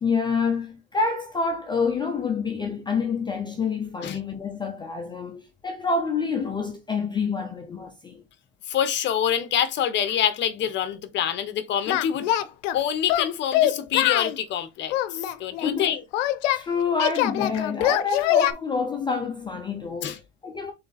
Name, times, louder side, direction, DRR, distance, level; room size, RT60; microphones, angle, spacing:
voice 1, 0.0-8.2 15.6-15.9 16.5-20.7, left 4 dB, 15° left, 0.3 m, -27 dB
voice 2, 8.7-12.3 12.7-16.0 20.0-20.2, left 9 dB, 30° left, 0.7 m, -26 dB
Singing, 11.9-12.8 13.1-14.4 14.9-16.6 17.0-18.5, left 13 dB, 90° left, 0.6 m, -23 dB
3.7 x 3.2 x 3.9 m
supercardioid pair, 145°, 36 cm